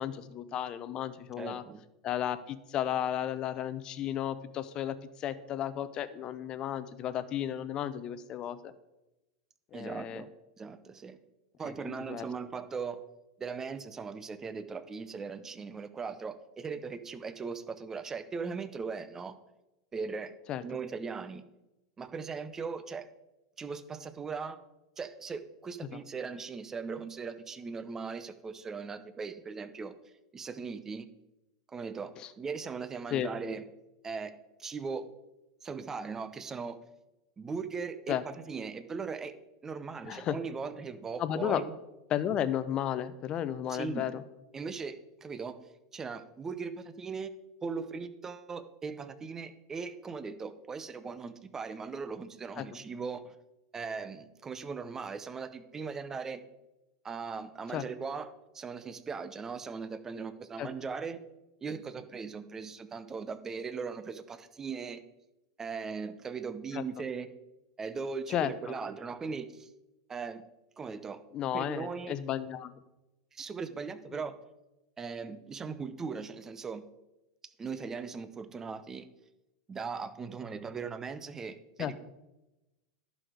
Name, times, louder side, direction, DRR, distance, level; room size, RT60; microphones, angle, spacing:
voice 1, 0.0-1.6 2.0-8.7 9.7-10.2 11.6-12.3 20.5-20.6 32.2-32.3 33.1-33.3 38.1-38.2 40.1-40.4 41.2-41.6 42.1-44.2 52.6-52.7 57.7-57.8 60.6-60.7 66.7-66.8 68.3-68.5 71.3-72.7 81.8-82.0, left 10 dB, 35° left, 14 dB, 0.7 m, -33 dB
voice 2, 1.4-1.8 9.7-10.3 10.6-11.2 11.6-13.0 13.4-19.4 19.9-20.3 20.6-21.4 22.0-23.1 23.6-24.6 25.0-29.9 30.3-31.1 31.7-33.7 34.0-35.1 35.6-36.8 37.4-39.4 39.6-41.8 43.7-44.1 44.5-45.6 45.9-47.3 47.6-53.3 53.7-56.4 57.0-58.3 58.5-61.2 61.6-65.0 65.6-67.3 67.8-69.7 70.1-70.4 70.8-71.2 71.5-72.2 73.3-74.3 75.0-76.8 77.6-79.1 79.7-82.0, right 5 dB, 20° right, 13 dB, 0.7 m, -39 dB
11.0 x 6.3 x 5.0 m, 0.98 s
figure-of-eight pair, 90°, 2 cm